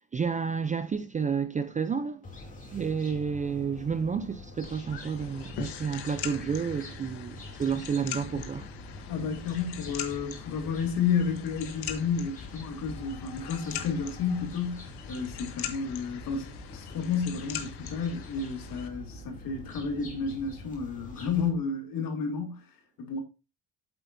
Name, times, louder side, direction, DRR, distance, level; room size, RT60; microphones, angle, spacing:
voice 1, 0.1-2.2 2.7-8.7, right 6 dB, 20° right, 0.4 m, -30 dB
sound 1, 2.2-21.5, left 1 dB, 20° left, 2.6 m, -45 dB
sound 2, 4.6-18.9, left 8 dB, 85° left, 1.5 m, -42 dB
voice 2, 9.1-22.6 23.0-23.2, left 6 dB, 60° left, 2.5 m, -31 dB
9.0 x 7.7 x 2.6 m
cardioid pair, 155°, 38 cm